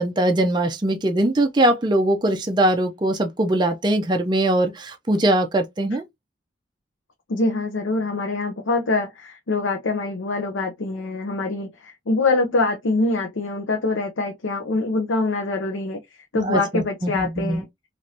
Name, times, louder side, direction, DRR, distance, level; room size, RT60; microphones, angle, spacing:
voice 1, 0.0-6.0 16.5-17.6, right 1 dB, 25° right, 0.4 m, -21 dB
voice 2, 7.3-16.0 16.3-17.7, left 3 dB, 85° left, 0.6 m, -24 dB
3.2 x 2.5 x 2.7 m
head